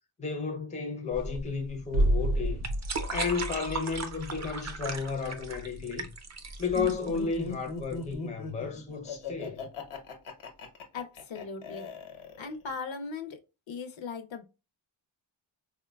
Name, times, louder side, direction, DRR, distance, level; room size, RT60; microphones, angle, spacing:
voice 1, 0.2-2.7 3.1-6.1 6.6-9.6, left 5 dB, 15° left, 0.5 m, -33 dB
sound 1, 1.1-8.1, right 4 dB, 35° right, 0.5 m, -38 dB
sound 2, 1.9-7.7 7.9-8.0, right 1 dB, 75° right, 0.6 m, -32 dB
Laughter, 6.7-12.7, left 4 dB, 90° left, 1.0 m, -39 dB
voice 2, 10.9-11.9 12.4-13.4 13.7-14.4, left 5 dB, 65° left, 0.6 m, -38 dB
4.3 x 2.2 x 2.2 m
wide cardioid pair, 145°, 49 cm